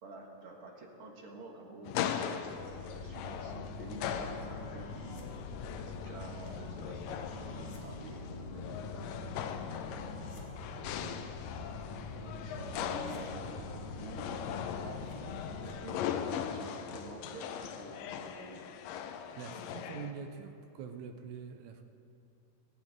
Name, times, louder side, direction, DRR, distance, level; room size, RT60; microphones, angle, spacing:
voice 1, 0.0-2.4 2.9-5.0 5.7-9.6 10.4-11.3 12.1-15.2 15.5-18.7 19.4-19.9, right 3 dB, 45° right, 0 dB, 2.3 m, -50 dB
sound 1, 1.8-20.1, left 8 dB, 85° left, 2.3 m, -40 dB
sound 2, 2.6-15.7, left 3 dB, 60° left, 3.1 m, -44 dB
voice 2, 19.4-21.8, right 6 dB, 70° right, 6 dB, 2.0 m, -44 dB
18.5 x 16.5 x 3.9 m, 2.6 s
omnidirectional pair, 4.0 m